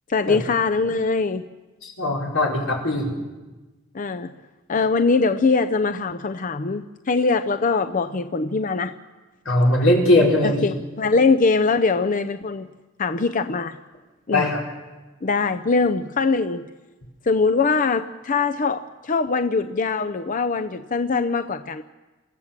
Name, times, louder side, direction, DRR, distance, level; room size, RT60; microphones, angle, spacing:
voice 1, 0.1-1.5 3.9-4.3 4.7-8.9 10.4-12.7 13.0-13.8 14.3-14.5 15.2-16.6 17.3-21.8, left 4 dB, 40° left, 9 dB, 0.6 m, -22 dB
voice 2, 1.8-3.1 9.4-10.7 14.3-14.6, left 1 dB, 85° left, -1 dB, 5.1 m, -20 dB
28.0 x 15.0 x 7.5 m, 1.2 s
head